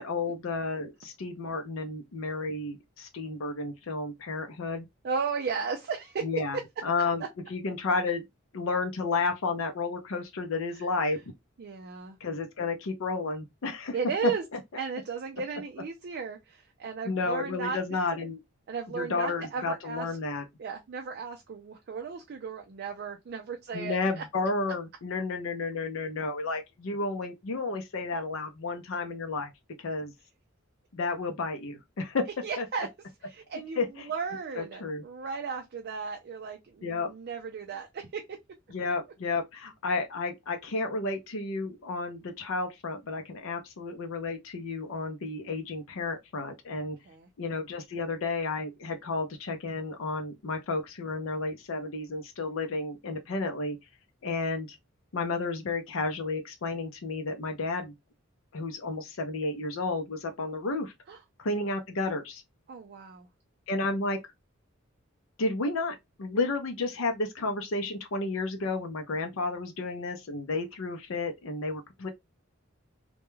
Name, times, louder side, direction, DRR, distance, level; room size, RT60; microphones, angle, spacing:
voice 1, 0.0-4.9 6.2-6.6 6.8-7.2 7.5-8.2 8.5-11.2 12.2-13.9 14.2-14.3 17.1-18.4 18.9-20.4 23.7-29.5 29.8-30.1 30.9-32.3 32.6-32.7 33.8-33.9 34.6-35.0 36.8-37.1 38.7-47.0 47.4-53.8 54.2-54.8 55.1-57.9 58.5-60.9 61.4-62.4 63.7-64.2 65.4-72.1, left 3 dB, 65° left, 0.5 m, -32 dB
voice 2, 5.0-6.2 10.7-10.9 11.6-12.2 13.9-14.4 14.8-17.8 18.7-20.1 20.6-24.2 32.4-32.9 33.2-38.2 47.1-47.3 61.1-61.2 62.7-63.3, right 5 dB, 50° right, 0.4 m, -35 dB
2.2 x 2.1 x 3.0 m
head